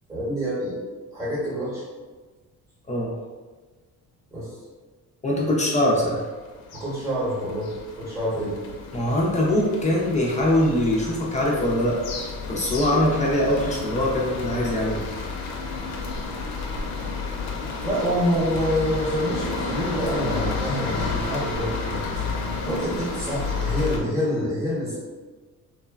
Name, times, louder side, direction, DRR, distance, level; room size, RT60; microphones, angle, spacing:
voice 1, 0.1-0.8 1.1-1.8 4.3-4.6 6.7-8.6 17.8-22.0 22.6-25.0, equal, 10° right, -8 dB, 0.8 m, -27 dB
voice 2, 5.2-6.2 8.9-12.0 12.5-15.0, left 1 dB, 20° left, -3 dB, 0.3 m, -22 dB
sound 1, 6.2-24.0, left 4 dB, 85° left, 0.6 m, -31 dB
3.0 x 2.1 x 2.2 m, 1.3 s
cardioid pair, 145°, 36 cm